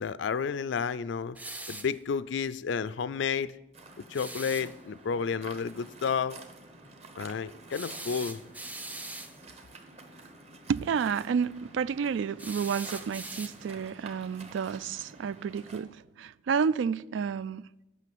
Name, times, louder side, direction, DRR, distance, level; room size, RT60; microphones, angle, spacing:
voice 1, 0.0-1.4 1.7-3.5 4.1-6.4 7.2-8.4, left 6 dB, 80° left, 0.4 m, -31 dB
sound 1, 1.3-2.0 4.1-4.7 7.7-9.4 12.4-13.8, right 2 dB, 10° right, 0.4 m, -41 dB
Waves surf, 3.7-15.8, right 2 dB, 35° right, 1.0 m, -50 dB
voice 2, 10.7-17.6, right 6 dB, 85° right, 0.3 m, -30 dB
9.1 x 5.8 x 7.7 m
head